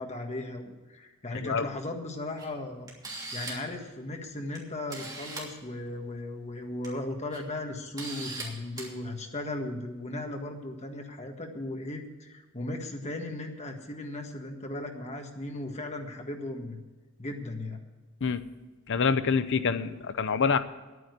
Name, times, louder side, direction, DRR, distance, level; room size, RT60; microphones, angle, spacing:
voice 1, 0.0-2.9 3.3-16.8 17.2-17.8, left 2 dB, 30° left, 3 dB, 1.6 m, -37 dB
voice 2, 1.3-1.7 18.2-18.4 18.9-20.6, left 5 dB, 60° left, 12 dB, 0.7 m, -26 dB
Camera, 2.4-2.5 2.9-3.7 4.5-4.6 4.9-5.5 6.6-6.9 7.3-7.4 8.0-8.4 8.8-8.9, right 2 dB, 20° right, 3.0 m, -39 dB
10.5 x 9.5 x 8.0 m, 1.3 s
head